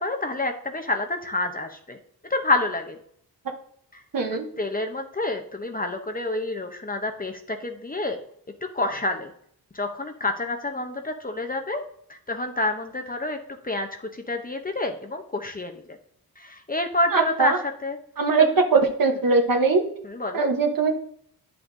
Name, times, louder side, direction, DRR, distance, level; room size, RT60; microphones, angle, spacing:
voice 1, 0.0-2.0 2.2-3.0 3.9-4.0 4.3-8.2 8.6-9.3 9.7-11.8 12.1-13.4 13.6-16.0 16.4-18.0 18.4-18.6 19.1-19.2 20.0-20.5, left 2 dB, 25° left, 5 dB, 0.8 m, -28 dB
voice 2, 4.1-4.5 17.1-17.6 18.2-18.4 18.7-19.8 20.3-20.9, right 4 dB, 60° right, 4 dB, 1.1 m, -21 dB
10.0 x 6.1 x 2.7 m, 0.64 s
wide cardioid pair, 110°, 37 cm